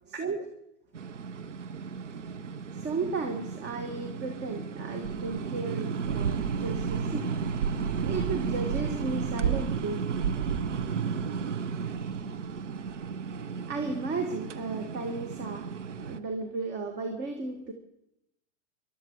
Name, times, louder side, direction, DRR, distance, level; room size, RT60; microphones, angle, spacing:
voice 1, 0.1-0.5 2.7-7.4 7.9-10.4 13.4-15.7 16.0-17.7, right 3 dB, 30° right, 6 dB, 1.7 m, -35 dB
sound 1, 0.9-16.2, right 6 dB, 85° right, 1.0 m, -33 dB
22.5 x 12.5 x 4.8 m, 0.81 s
hypercardioid pair, 110°, 36 cm